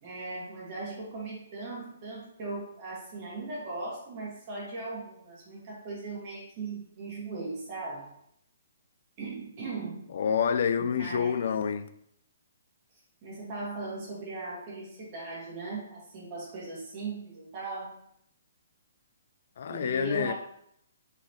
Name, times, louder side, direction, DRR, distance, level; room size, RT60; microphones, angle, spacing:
voice 1, 0.0-8.1 9.2-10.1 10.8-11.4 13.2-18.0 19.7-20.3, right 3 dB, 30° right, 1.7 m, -38 dB
voice 2, 10.1-11.9 19.6-20.3, left 7 dB, 50° left, 0.3 m, -28 dB
4.0 x 4.0 x 3.0 m
hypercardioid pair, 170°, 0 cm